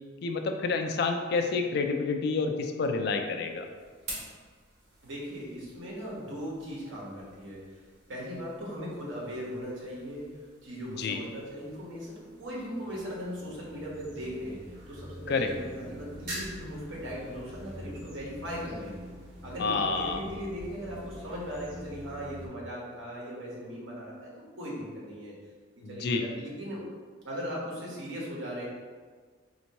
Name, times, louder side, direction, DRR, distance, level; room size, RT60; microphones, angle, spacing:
voice 1, 0.2-3.7 10.9-11.2 15.3-15.5 19.6-20.2 25.8-26.2, left 4 dB, 55° left, 5 dB, 0.3 m, -29 dB
sound 1, 3.2-20.2, right 1 dB, 50° right, 1.5 m, -49 dB
voice 2, 5.0-7.8 8.1-10.3 10.6-18.9 19.4-25.3 25.8-26.8 27.2-28.7, equal, 75° right, -5 dB, 1.1 m, -38 dB
sound 2, 12.8-22.5, equal, 25° right, 1.1 m, -46 dB
4.3 x 2.9 x 2.8 m, 1.5 s
head